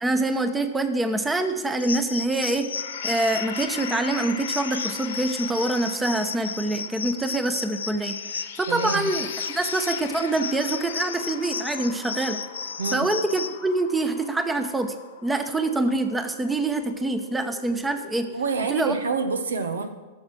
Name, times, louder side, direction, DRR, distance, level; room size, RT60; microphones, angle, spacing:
voice 1, 0.0-2.7 3.0-12.4 12.9-14.9 15.2-18.3 18.7-19.0, right 2 dB, 10° right, 8 dB, 0.9 m, -25 dB
sound 1, 1.8-13.6, left 5 dB, 85° left, 0.6 m, -34 dB
sound 2, 2.7-18.4, left 7 dB, 70° left, 1.3 m, -40 dB
voice 2, 8.7-9.1 12.8-13.1 18.3-19.9, right 4 dB, 80° right, 8 dB, 1.0 m, -27 dB
13.5 x 6.6 x 6.2 m, 1.3 s
hypercardioid pair, 105°, 0 cm